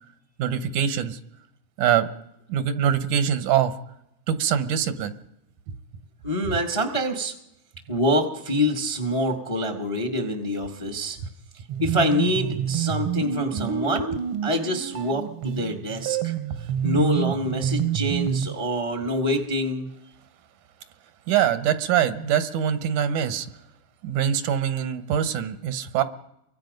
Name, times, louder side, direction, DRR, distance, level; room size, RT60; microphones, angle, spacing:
voice 1, 0.4-1.2 1.8-2.1 2.5-3.7 4.3-5.1 6.5-6.6 21.3-23.5 24.0-26.0, right 9 dB, 85° right, 12 dB, 2.5 m, -23 dB
voice 2, 6.2-7.3 7.9-11.2 11.8-14.2 14.4-16.3 16.8-19.9, left 1 dB, 20° left, 5 dB, 0.8 m, -26 dB
sound 1, 11.7-18.5, right 10 dB, 65° right, 1.5 m, -28 dB
29.0 x 23.5 x 5.3 m, 0.86 s
omnidirectional pair, 3.4 m